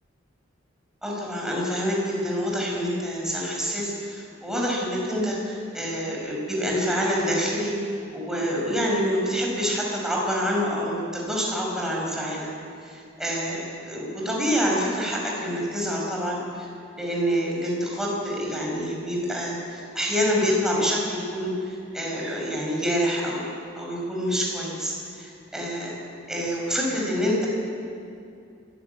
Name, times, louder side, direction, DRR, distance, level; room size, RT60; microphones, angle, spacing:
voice 1, 1.0-7.7 8.1-12.5 12.8-16.7 17.0-23.5 23.8-25.9 26.3-27.5, equal, 5° right, -3 dB, 5.8 m, -27 dB
22.0 x 15.5 x 9.3 m, 2.5 s
head